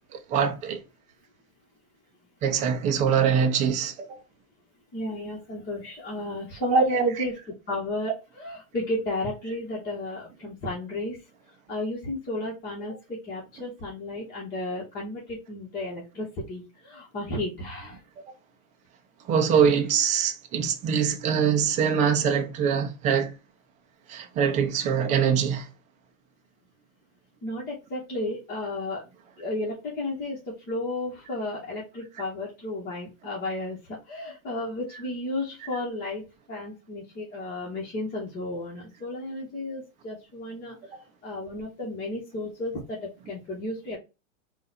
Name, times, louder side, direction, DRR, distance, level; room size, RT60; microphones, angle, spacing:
voice 1, 0.3-0.8 2.4-4.2 6.7-7.2 19.3-23.3 24.1-25.7 40.9-41.0, right 7 dB, 20° right, 0.5 m, -23 dB
voice 2, 4.9-7.3 7.7-11.2 11.7-18.0 27.4-29.0 29.4-30.4 30.7-33.8 34.1-40.9 41.2-44.0, left 2 dB, 25° left, 1.4 m, -33 dB
3.8 x 2.5 x 4.1 m
supercardioid pair, 140°, 42 cm